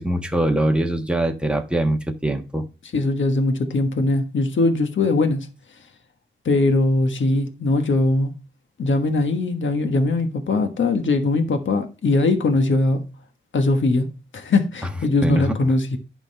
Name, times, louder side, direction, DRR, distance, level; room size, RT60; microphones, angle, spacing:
voice 1, 0.0-2.7 15.2-15.6, right 1 dB, 5° right, 1.4 m, -22 dB
voice 2, 2.9-5.5 6.4-8.3 8.8-13.0 13.5-16.0, left 2 dB, 65° left, 1.4 m, -21 dB
11.0 x 4.0 x 5.4 m
wide cardioid pair, 100°, 21 cm